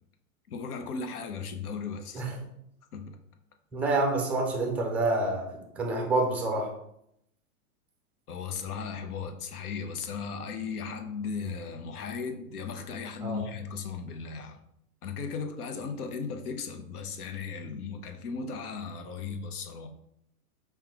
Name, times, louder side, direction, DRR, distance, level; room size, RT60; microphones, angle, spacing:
voice 1, 0.5-2.2 2.9-3.2 8.3-14.6 15.0-19.9, left 5 dB, 75° left, 6 dB, 0.8 m, -36 dB
voice 2, 3.7-5.5 5.7-6.7 13.2-13.4, right 2 dB, 5° right, 2 dB, 0.4 m, -27 dB
5.5 x 2.3 x 3.5 m, 0.76 s
hypercardioid pair, 120°, 45 cm